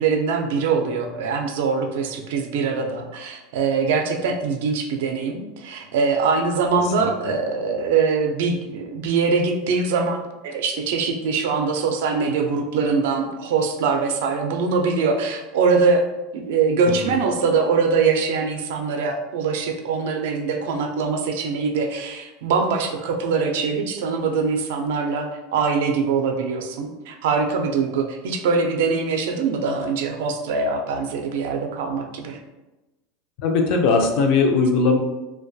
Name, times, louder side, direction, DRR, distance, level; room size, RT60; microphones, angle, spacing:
voice 1, 0.0-16.1 16.3-32.4, right 5 dB, 75° right, 4 dB, 0.3 m, -23 dB
voice 2, 6.8-7.3 16.8-17.2 33.4-35.0, left 4 dB, 50° left, 3 dB, 0.4 m, -20 dB
2.2 x 2.1 x 2.6 m, 1.1 s
supercardioid pair, 150°, 0 cm